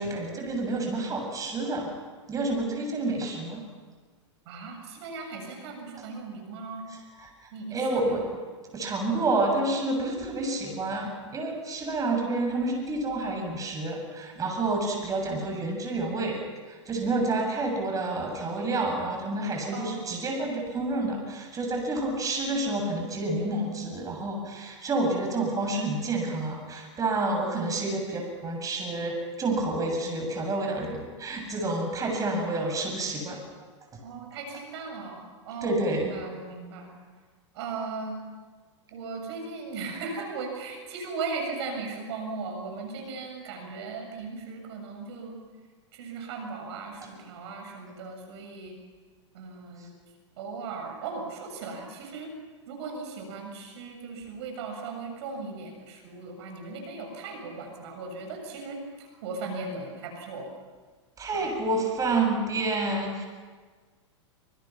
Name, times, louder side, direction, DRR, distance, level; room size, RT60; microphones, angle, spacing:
voice 1, 0.0-1.9 2.3-3.6 7.2-8.3 8.7-16.4 16.7-33.4 35.6-36.1 61.2-63.3, right 2 dB, 20° right, 2 dB, 7.4 m, -29 dB
voice 2, 4.5-6.9 7.5-8.2 19.7-20.2 27.3-28.1 34.0-36.9 37.5-38.2 38.9-45.4 45.9-48.8 49.3-49.9 50.4-52.3 52.7-60.5 61.3-61.5, right 4 dB, 60° right, 3 dB, 7.1 m, -37 dB
27.5 x 26.5 x 6.0 m, 1.4 s
hypercardioid pair, 105°, 16 cm